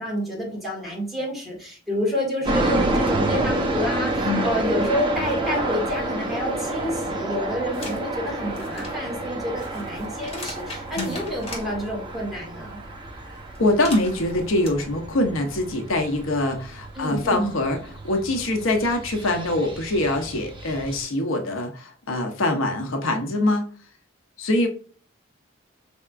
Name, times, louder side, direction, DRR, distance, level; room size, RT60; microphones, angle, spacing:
voice 1, 0.0-12.8 16.9-17.6, left 1 dB, ahead, -4 dB, 2.0 m, -29 dB
sound 1, 2.4-21.0, right 2 dB, 25° right, 0.8 m, -29 dB
sound 2, 7.7-8.0 8.4-11.7 13.5-14.7, left 2 dB, 30° left, 1.4 m, -38 dB
voice 2, 13.6-17.8 18.0-23.7 24.4-24.7, left 1 dB, 85° left, 4 dB, 0.8 m, -24 dB
5.6 x 3.5 x 2.5 m, 0.40 s
head